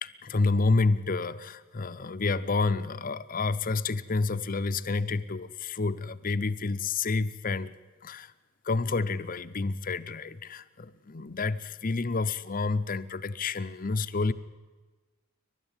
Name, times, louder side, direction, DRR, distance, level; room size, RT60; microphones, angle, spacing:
voice 1, 0.0-7.7 8.0-8.3 8.6-14.3, left 3 dB, 40° left, 12 dB, 0.7 m, -29 dB
29.5 x 12.0 x 9.0 m, 1.3 s
head